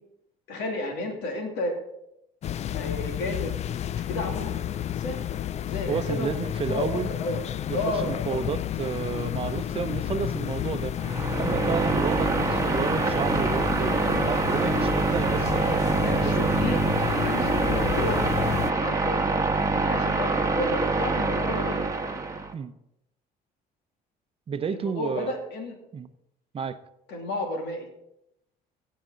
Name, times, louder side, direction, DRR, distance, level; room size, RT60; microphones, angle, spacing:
voice 1, 0.5-1.7 2.7-3.6 4.0-4.6 4.9-5.2 5.6-6.3 6.7-7.4 7.7-8.4 16.0-21.8 24.7-25.8 27.1-27.9, left 2 dB, 85° left, 2 dB, 2.6 m, -32 dB
sound 1, 2.4-18.7, left 10 dB, 40° left, 0.4 m, -31 dB
voice 2, 5.9-7.1 7.7-10.9 11.4-15.7 16.2-16.5 22.5-22.7 24.5-25.3 25.9-26.1 26.5-26.8, right 6 dB, 35° right, 11 dB, 0.7 m, -31 dB
sound 2, 11.0-22.5, right 3 dB, 20° right, 1.1 m, -25 dB
16.5 x 6.8 x 3.9 m, 0.82 s
cardioid pair, 110°, 17 cm